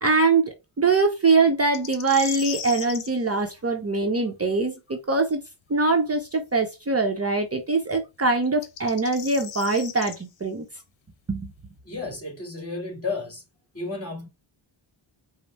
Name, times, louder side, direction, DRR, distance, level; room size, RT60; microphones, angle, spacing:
voice 1, 0.0-5.4 5.7-10.6 11.3-11.5, right 3 dB, 30° right, 0.8 m, -23 dB
sound 1, 1.7-3.1 6.2-6.3 8.5-10.2, left 8 dB, 70° left, 0.9 m, -36 dB
voice 2, 11.8-13.4 13.7-14.3, left 3 dB, 30° left, 2.1 m, -32 dB
5.3 x 2.1 x 4.2 m
wide cardioid pair, 115°, 49 cm